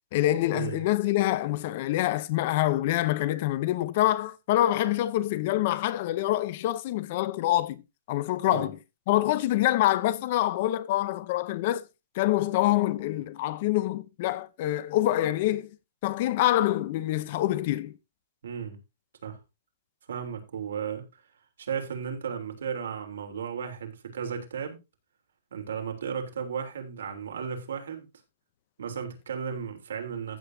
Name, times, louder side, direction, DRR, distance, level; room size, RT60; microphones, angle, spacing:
voice 1, 0.1-7.8 8.1-8.8 9.1-11.8 12.2-15.7 16.0-17.9, left 15 dB, 35° left, 0.6 m, -26 dB
voice 2, 18.4-18.8 19.2-19.4 20.1-21.2 21.6-24.8 25.5-28.0 28.8-30.4, right 7 dB, 85° right, 3.3 m, -34 dB
15.0 x 7.9 x 2.7 m
hypercardioid pair, 175°, 0 cm